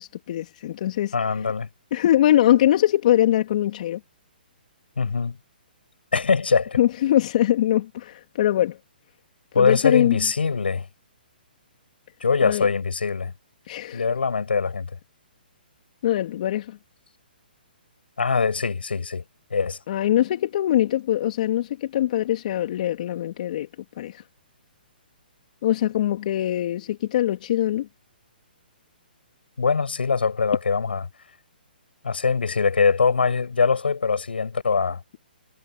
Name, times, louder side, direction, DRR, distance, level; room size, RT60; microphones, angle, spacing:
voice 1, 0.0-1.1 1.9-4.0 6.8-8.8 9.6-10.2 12.4-12.7 13.7-14.0 16.0-16.8 19.9-23.7 24.0-24.2 25.6-27.9, left 12 dB, 50° left, 2.8 m, -22 dB
voice 2, 1.1-1.7 5.0-5.4 6.1-6.8 9.5-10.9 12.2-13.3 13.9-14.9 18.2-19.2 19.5-19.8 29.6-31.1 32.0-35.0, left 5 dB, 80° left, 7.9 m, -22 dB
hypercardioid pair, 135°, 5 cm